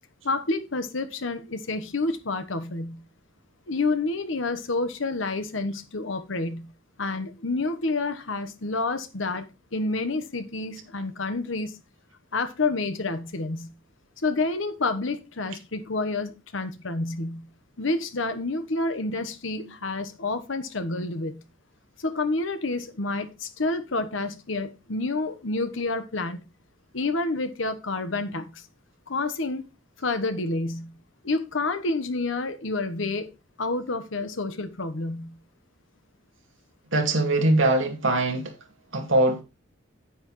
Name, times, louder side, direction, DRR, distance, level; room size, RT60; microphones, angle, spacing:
voice 1, 0.2-3.0 3.7-6.7 7.0-9.5 9.7-11.8 12.3-13.7 14.2-17.5 17.8-21.4 22.0-26.4 26.9-28.6 29.1-29.6 30.0-30.9 31.2-33.3 33.6-35.4, left 3 dB, 75° left, 1.1 m, -29 dB
voice 2, 36.9-38.5 38.9-39.4, right 2 dB, 75° right, 2.1 m, -22 dB
9.5 x 8.1 x 3.1 m
head